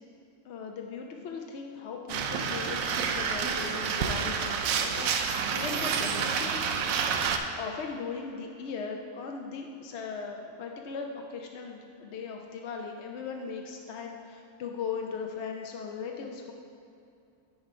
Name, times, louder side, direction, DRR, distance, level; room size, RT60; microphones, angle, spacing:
voice 1, 0.4-6.6 7.6-16.5, left 5 dB, 65° left, 2 dB, 0.8 m, -38 dB
sound 1, 2.1-7.4, right 6 dB, 85° right, 1.0 m, -29 dB
9.6 x 4.3 x 4.7 m, 2.6 s
omnidirectional pair, 1.4 m